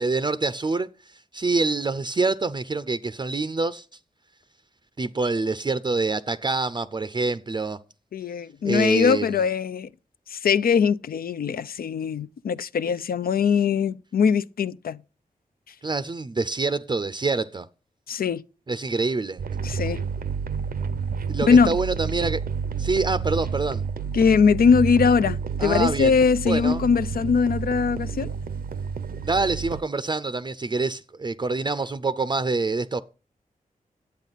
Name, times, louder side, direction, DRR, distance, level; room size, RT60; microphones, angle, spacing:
voice 1, 0.0-3.9 5.0-7.8 8.6-9.5 15.8-17.7 18.7-19.4 21.3-22.4 22.8-23.8 25.6-26.1 26.5-26.8 29.2-33.0, right 3 dB, 30° right, 0.5 m, -26 dB
voice 2, 8.1-9.9 10.3-15.0 18.1-18.4 19.6-20.0 21.5-21.8 24.1-28.3, left 6 dB, 90° left, 0.5 m, -21 dB
sound 1, 19.4-29.8, right 6 dB, 80° right, 0.7 m, -30 dB
10.5 x 8.3 x 4.0 m
wide cardioid pair, 110°, 15 cm